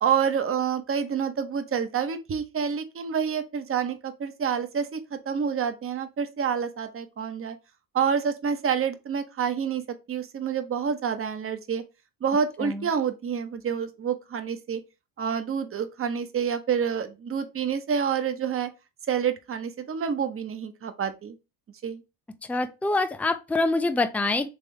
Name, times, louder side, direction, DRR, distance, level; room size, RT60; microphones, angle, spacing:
voice 1, 0.0-7.6 7.9-9.8 10.1-11.8 12.2-14.8 15.2-18.7 19.1-21.3 21.8-22.0, right 7 dB, 35° right, 0.8 m, -28 dB
voice 2, 22.5-24.5, left 2 dB, 5° left, 0.5 m, -25 dB
3.6 x 3.3 x 3.2 m
hypercardioid pair, 65°, 40 cm